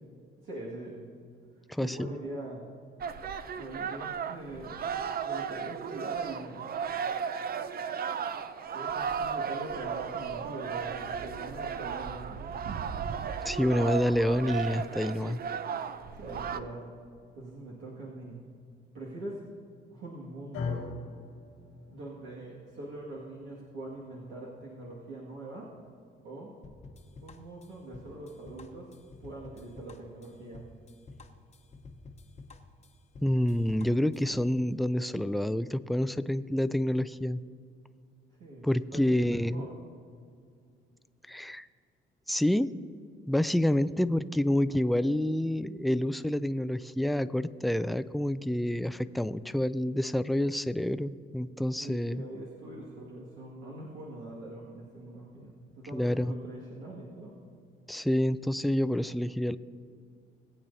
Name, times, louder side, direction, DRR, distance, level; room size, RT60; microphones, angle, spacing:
voice 1, 0.4-1.0 1.8-2.7 3.6-4.9 5.2-6.7 8.7-12.9 16.1-16.8 17.3-18.4 18.9-19.4 19.9-20.9 21.9-25.7 26.2-26.5 27.2-28.9 29.2-30.6 38.4-39.8 51.7-57.3, right 2 dB, 70° right, -5 dB, 2.0 m, -43 dB
voice 2, 1.7-2.1 13.4-15.4 33.2-37.4 38.6-39.7 41.3-41.7 42.3-42.7 43.3-52.2 55.9-56.3 57.9-59.6, left 1 dB, ahead, 13 dB, 0.3 m, -28 dB
sound 1, 3.0-16.6, right 7 dB, 50° right, 0.6 m, -35 dB
sound 2, 20.5-28.8, left 5 dB, 90° left, 1.7 m, -44 dB
sound 3, 26.6-34.5, left 3 dB, 35° left, 0.9 m, -50 dB
19.5 x 8.7 x 2.7 m, 2.3 s
cardioid pair, 90°, 20 cm